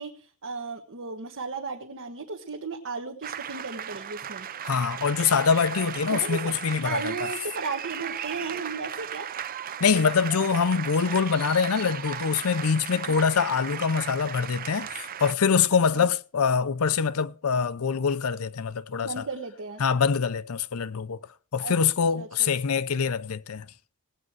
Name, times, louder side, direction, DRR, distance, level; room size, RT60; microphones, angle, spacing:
voice 1, 0.0-4.5 6.1-6.5 6.8-9.3 13.1-13.3 15.9-16.0 19.0-19.8 21.6-21.8 22.1-22.5, right 4 dB, 60° right, 1.2 m, -35 dB
sound 1, 3.2-15.3, right 8 dB, 40° right, 0.5 m, -36 dB
voice 2, 4.6-7.1 9.8-19.2 19.8-21.2 21.5-23.7, left 6 dB, 75° left, 0.6 m, -24 dB
17.5 x 8.6 x 4.6 m
head